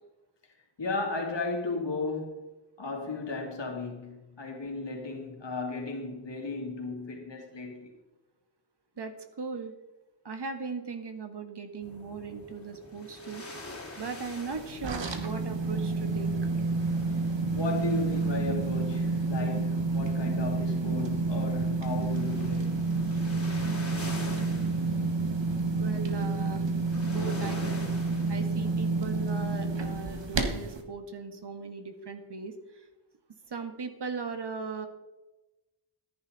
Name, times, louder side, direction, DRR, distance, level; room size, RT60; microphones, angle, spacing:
voice 1, 0.8-2.5 2.8-7.9 17.5-22.8, left 3 dB, 80° left, 2.8 m, -35 dB
voice 2, 9.0-9.7 10.2-13.4 14.0-16.3 25.7-26.6 27.0-27.8 28.3-32.5 33.5-34.9, right 5 dB, 70° right, 1.6 m, -38 dB
sound 1, 11.8-30.3, left 2 dB, 30° left, 2.8 m, -47 dB
sound 2, 14.5-30.8, right 3 dB, 85° right, 1.6 m, -29 dB
14.5 x 10.5 x 4.0 m
wide cardioid pair, 70°, 43 cm